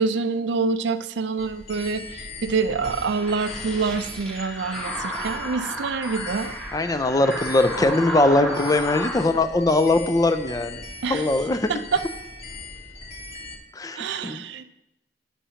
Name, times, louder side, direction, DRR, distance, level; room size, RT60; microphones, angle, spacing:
voice 1, 0.0-6.5 11.0-11.3 11.7-12.0 14.0-14.6, right 4 dB, 70° right, 11 dB, 0.4 m, -26 dB
sound 1, 1.4-13.6, left 3 dB, 35° left, 1.1 m, -39 dB
sound 2, 2.8-9.2, equal, 5° left, 1.1 m, -33 dB
voice 2, 6.7-10.8 11.1-11.7 13.8-14.4, left 2 dB, 20° left, 10 dB, 0.4 m, -21 dB
10.0 x 7.1 x 2.8 m, 0.91 s
head